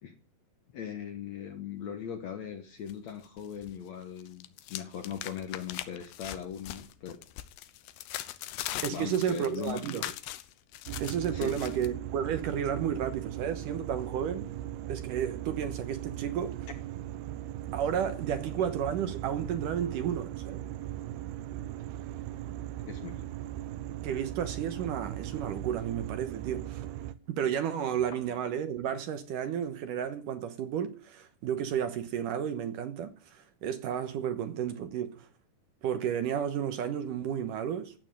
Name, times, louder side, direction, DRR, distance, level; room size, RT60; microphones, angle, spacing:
voice 1, 0.7-7.2 8.7-9.8 11.3-11.7 22.9-23.3, left 8 dB, 60° left, 2.0 m, -39 dB
sound 1, 2.9-3.8 4.0-11.9, left 14 dB, 90° left, 2.9 m, -41 dB
voice 2, 8.8-10.0 11.0-14.5 14.9-16.6 17.7-20.6 24.0-26.9 27.3-35.3 35.8-37.9, right 9 dB, 70° right, 2.4 m, -32 dB
sound 2, 10.9-27.2, right 12 dB, 90° right, 2.9 m, -39 dB
14.0 x 9.2 x 9.1 m
omnidirectional pair, 4.5 m